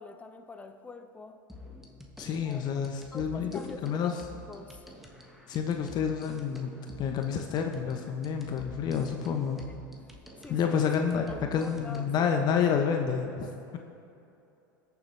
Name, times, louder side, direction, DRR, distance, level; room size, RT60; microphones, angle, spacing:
voice 1, 0.0-1.4 2.4-2.7 3.1-4.1 4.5-4.9 9.6-9.7 10.0-10.1 10.4-10.7 11.3-12.3, left 3 dB, 15° left, 7 dB, 0.8 m, -45 dB
sound 1, 1.5-12.3, left 2 dB, ahead, 1.3 m, -49 dB
voice 2, 2.2-4.2 5.5-9.7 10.5-13.8, left 7 dB, 40° left, 4 dB, 0.9 m, -29 dB
20.0 x 7.1 x 3.3 m, 2.7 s
hypercardioid pair, 100°, 11 cm